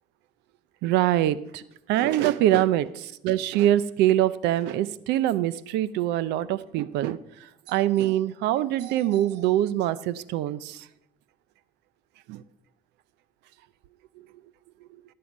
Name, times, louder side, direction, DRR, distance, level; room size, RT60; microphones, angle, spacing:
voice 1, 0.8-1.6 1.9-7.2 7.7-10.9 12.3-12.4, right 13 dB, 90° right, 18 dB, 0.5 m, -24 dB
17.0 x 7.7 x 5.3 m, 0.79 s
cardioid pair, 110°, 17 cm